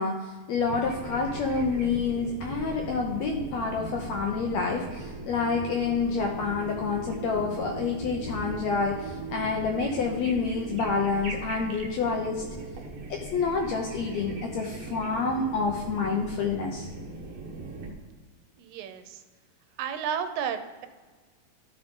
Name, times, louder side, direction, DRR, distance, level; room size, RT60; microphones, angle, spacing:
voice 1, 0.0-12.4 13.1-16.9, left 4 dB, 75° left, 1 dB, 1.6 m, -28 dB
sound 1, 0.6-17.9, right 3 dB, 60° right, 1.5 m, -39 dB
voice 2, 18.6-19.2 19.8-20.9, right 8 dB, 85° right, 8 dB, 2.4 m, -32 dB
13.5 x 4.8 x 3.7 m, 1.4 s
omnidirectional pair, 3.9 m